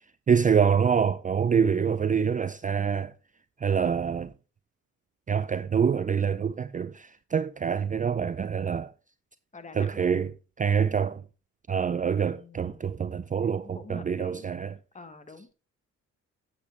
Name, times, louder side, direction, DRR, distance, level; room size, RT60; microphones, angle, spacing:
voice 1, 0.3-3.1 3.6-4.3 5.3-8.9 9.7-11.2 11.7-14.8, right 7 dB, 25° right, 0.4 m, -26 dB
voice 2, 9.5-9.9 12.3-13.0 13.5-14.4 14.9-15.5, left 3 dB, 25° left, 1.4 m, -47 dB
9.1 x 8.3 x 3.3 m
cardioid pair, 90°, 30 cm